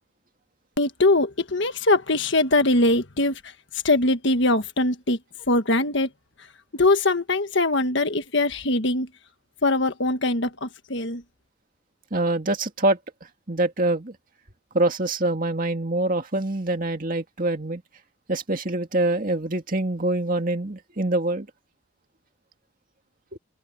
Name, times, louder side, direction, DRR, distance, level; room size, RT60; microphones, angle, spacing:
voice 1, 0.8-3.4 3.8-5.2 5.5-6.1 6.7-9.1 9.6-11.2, left 2 dB, 55° left, 1.6 m, -22 dB
voice 2, 12.1-13.0 13.5-14.1 14.7-17.8 18.3-21.5 23.3-23.4, right 2 dB, 40° right, 2.3 m, -25 dB
open air
head